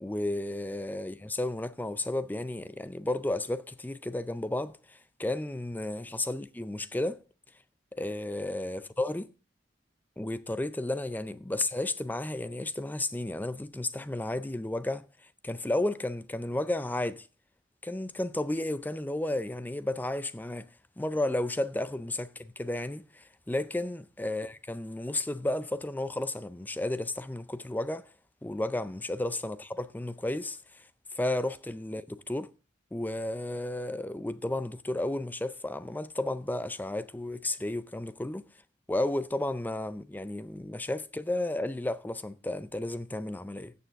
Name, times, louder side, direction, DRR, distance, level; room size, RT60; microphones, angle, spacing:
voice 1, 0.0-7.2 7.9-9.3 10.2-15.1 15.4-17.3 17.8-20.7 21.0-28.1 28.4-30.9 31.1-32.5 32.9-38.4 38.9-43.7, left 1 dB, 10° left, 0.4 m, -33 dB
15.5 x 6.9 x 3.5 m
head